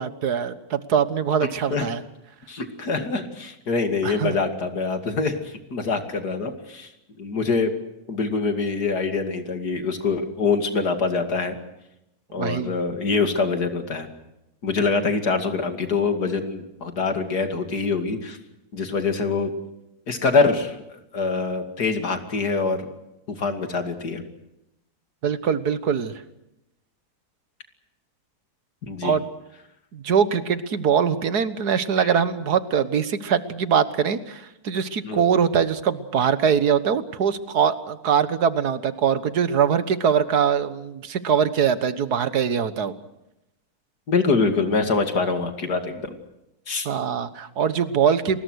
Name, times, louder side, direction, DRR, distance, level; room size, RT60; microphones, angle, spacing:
voice 1, 0.0-2.0 4.0-4.4 12.4-12.7 25.2-26.2 29.0-29.3 29.9-42.9 46.9-48.4, right 7 dB, 85° right, 13 dB, 1.9 m, -22 dB
voice 2, 2.5-6.9 7.2-7.7 8.1-11.6 12.3-14.1 14.6-18.4 18.7-19.5 20.1-22.9 23.3-24.2 28.8-29.1 32.0-32.1 35.0-35.2 44.1-46.2 46.7-46.9, left 4 dB, 90° left, 7 dB, 3.0 m, -24 dB
29.5 x 21.0 x 6.4 m, 0.89 s
omnidirectional pair, 1.7 m